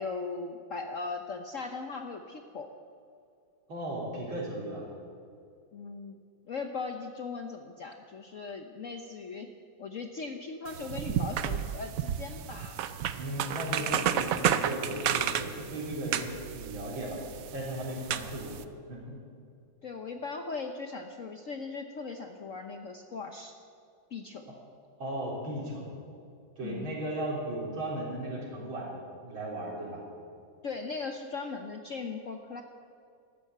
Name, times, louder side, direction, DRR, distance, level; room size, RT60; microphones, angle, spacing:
voice 1, 0.0-2.7 5.7-6.2 6.5-9.5 9.8-12.8 13.7-14.1 19.8-23.5 24.1-24.5 26.6-27.0 30.6-32.6, left 4 dB, 55° left, 5 dB, 0.9 m, -39 dB
voice 2, 3.7-4.8 12.6-12.7 13.1-17.2 17.5-18.6 18.9-19.2 25.0-25.9 26.6-30.0, right 1 dB, 90° right, -3 dB, 4.5 m, -36 dB
sound 1, 10.7-18.6, right 9 dB, 70° right, 0.8 m, -32 dB
14.0 x 12.0 x 8.0 m, 2.4 s
omnidirectional pair, 2.2 m